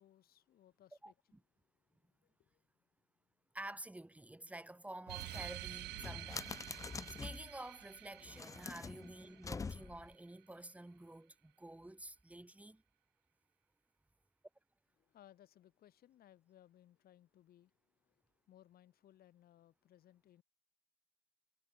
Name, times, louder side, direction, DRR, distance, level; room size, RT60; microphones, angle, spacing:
voice 1, 0.0-1.4 2.1-2.7 15.0-20.4, left 12 dB, 65° left, 5.6 m, -65 dB
voice 2, 1.0-1.4 3.5-12.8, right 1 dB, 10° right, 5.3 m, -50 dB
sound 1, 5.1-7.5 8.2-10.1, left 5 dB, 20° left, 0.5 m, -46 dB
sound 2, 5.1-10.1, right 18 dB, 80° right, 1.6 m, -49 dB
cardioid pair, 110°, 17 cm